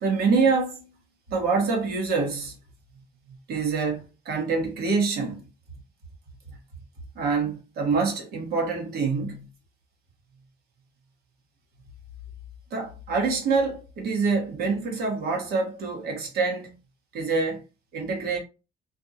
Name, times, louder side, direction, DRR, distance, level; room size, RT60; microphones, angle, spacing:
voice 1, 0.0-0.8 1.3-2.6 3.5-5.4 7.1-9.5 12.7-16.7 17.1-17.6 17.9-18.4, right 4 dB, 65° right, 1.2 m, -26 dB
2.6 x 2.3 x 2.7 m
cardioid pair, 110°, 17 cm